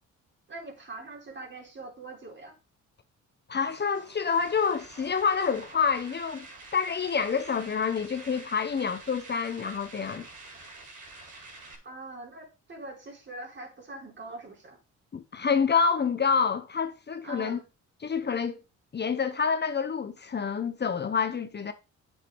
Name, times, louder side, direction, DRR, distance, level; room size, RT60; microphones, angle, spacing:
voice 1, 0.5-2.5 11.8-14.8 17.2-17.6, right 2 dB, 40° right, 3.7 m, -43 dB
voice 2, 3.5-6.5 6.7-10.2 15.1-17.6 18.0-18.6 18.9-21.7, left 6 dB, 35° left, 1.0 m, -27 dB
sound 1, 3.6-11.7, right 3 dB, 80° right, 4.9 m, -48 dB
8.8 x 7.5 x 4.6 m
cardioid pair, 90°, 30 cm